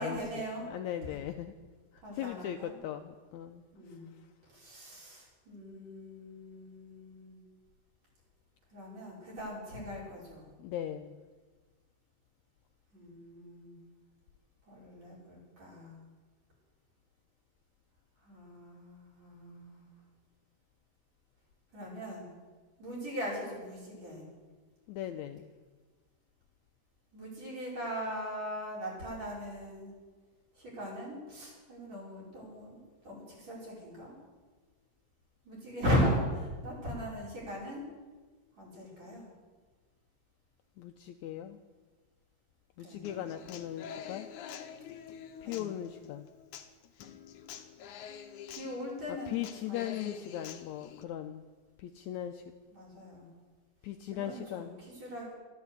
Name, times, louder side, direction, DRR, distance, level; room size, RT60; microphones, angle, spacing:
voice 1, 0.0-0.7 1.1-1.2 2.0-2.8 3.7-4.1 4.4-7.4 8.7-10.5 12.9-13.8 14.7-16.0 18.2-19.9 21.7-22.3 22.8-24.3 27.1-29.9 30.5-34.2 35.4-37.8 38.6-39.3 42.8-43.1 45.4-45.7 48.5-50.3 52.7-53.3 54.1-55.3, equal, 50° right, -4 dB, 6.4 m, -38 dB
voice 2, 0.7-1.5 1.9-4.0 10.6-11.1 24.9-25.5 40.8-41.6 42.8-44.3 45.4-46.3 49.3-51.4 51.8-52.4 53.8-54.7, left 11 dB, 90° left, 7 dB, 1.6 m, -39 dB
Human voice / Acoustic guitar, 43.0-51.0, left 8 dB, 70° left, 2.2 m, -47 dB
13.5 x 11.0 x 8.2 m, 1.4 s
omnidirectional pair, 4.0 m